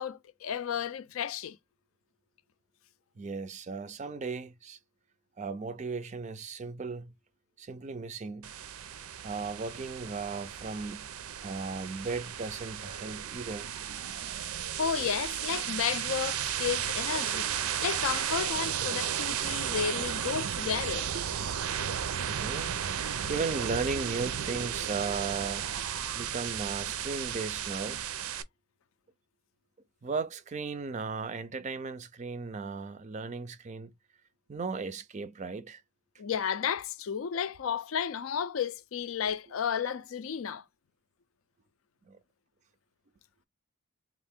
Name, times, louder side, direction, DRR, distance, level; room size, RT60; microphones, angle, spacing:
voice 1, 0.0-1.6 14.8-21.1 36.2-40.6, left 7 dB, 70° left, 0.4 m, -32 dB
voice 2, 3.2-4.8 5.4-7.1 7.6-8.5 9.2-11.1 11.4-13.7 21.1-21.2 21.9-22.0 22.3-25.7 26.1-28.0 30.0-33.9 34.5-35.8 42.1-42.2, right 4 dB, 35° right, 0.4 m, -36 dB
sound 1, 8.4-28.4, right 9 dB, 90° right, 0.5 m, -34 dB
3.5 x 2.5 x 3.5 m
head